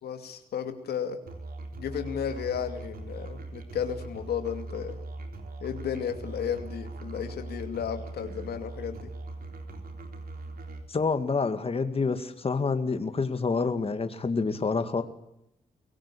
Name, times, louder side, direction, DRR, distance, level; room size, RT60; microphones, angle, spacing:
voice 1, 0.0-1.2 1.8-5.0 5.6-9.1, left 8 dB, 85° left, 7 dB, 2.6 m, -33 dB
Musical instrument, 1.3-10.9, right 2 dB, 70° right, 3.9 m, -40 dB
voice 2, 10.9-15.0, left 4 dB, 35° left, 8 dB, 2.2 m, -27 dB
24.0 x 17.5 x 8.6 m, 0.80 s
cardioid pair, 80°, 16 cm